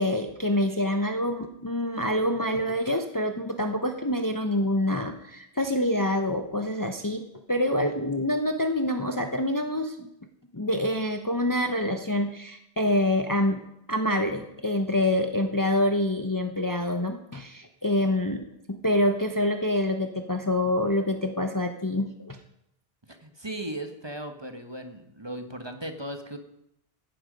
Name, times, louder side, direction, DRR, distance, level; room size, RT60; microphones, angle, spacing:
voice 1, 0.0-10.1 10.5-13.6 13.9-22.4, left 1 dB, 20° left, 6 dB, 0.9 m, -26 dB
voice 2, 23.1-26.4, right 1 dB, 25° right, 6 dB, 1.4 m, -37 dB
17.0 x 12.0 x 5.3 m, 0.79 s
omnidirectional pair, 1.1 m